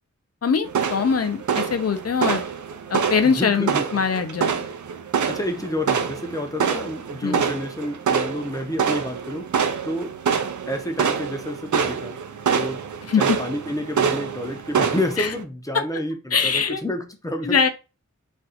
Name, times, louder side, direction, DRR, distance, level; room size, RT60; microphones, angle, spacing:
voice 1, 0.4-2.4 2.9-4.5 7.2-7.4 13.1-13.2 15.2-15.3 15.7-15.8 16.3-16.8 17.4-17.7, left 6 dB, 55° left, 0.5 m, -22 dB
sound 1, 0.7-15.4, right 7 dB, 80° right, 0.5 m, -26 dB
voice 2, 3.2-4.0 5.3-9.5 9.8-10.1 10.7-12.2 12.5-12.8 13.2-17.7, left 1 dB, 10° left, 0.6 m, -29 dB
2.5 x 2.2 x 4.0 m
wide cardioid pair, 70°, 29 cm